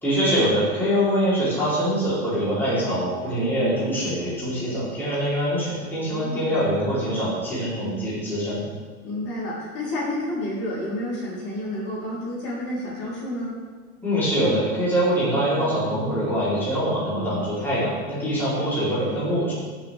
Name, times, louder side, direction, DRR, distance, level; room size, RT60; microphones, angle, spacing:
voice 1, 0.0-8.6 14.0-19.5, equal, 5° left, -12 dB, 4.2 m, -24 dB
voice 2, 6.1-6.6 9.0-13.5 18.5-19.0, left 1 dB, 35° left, -7 dB, 4.2 m, -30 dB
21.0 x 7.0 x 3.7 m, 1.5 s
supercardioid pair, 155°, 43 cm